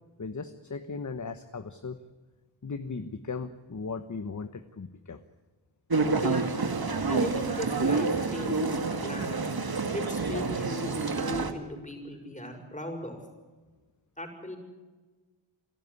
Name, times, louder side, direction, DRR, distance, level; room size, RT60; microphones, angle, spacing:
voice 1, 0.2-2.0 2.6-5.2, left 4 dB, 40° left, 10 dB, 1.2 m, -37 dB
sound 1, 5.9-11.5, right 4 dB, 50° right, 2.1 m, -28 dB
voice 2, 6.1-6.5 7.1-9.4 9.9-13.2 14.2-14.6, left 1 dB, 15° left, 4 dB, 6.4 m, -37 dB
27.5 x 13.0 x 9.8 m, 1.3 s
wide cardioid pair, 70°, 47 cm